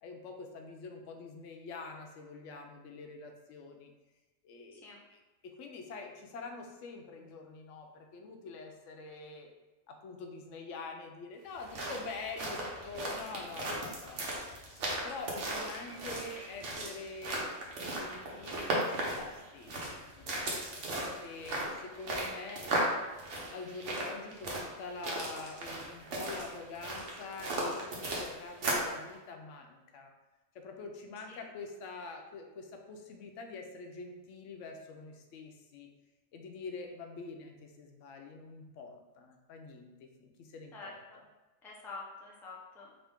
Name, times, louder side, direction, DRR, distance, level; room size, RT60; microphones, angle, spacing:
voice 1, 0.0-3.9 4.4-9.5 9.9-17.5 17.8-22.6 23.5-30.1 30.5-35.9 36.3-41.0, left 4 dB, 80° left, 3 dB, 0.9 m, -46 dB
sound 1, 11.5-29.0, right 1 dB, 70° right, 1.1 m, -36 dB
voice 2, 40.7-41.2 41.6-42.9, left 3 dB, 5° left, -5 dB, 0.4 m, -47 dB
3.9 x 2.6 x 3.5 m, 1.1 s
omnidirectional pair, 1.3 m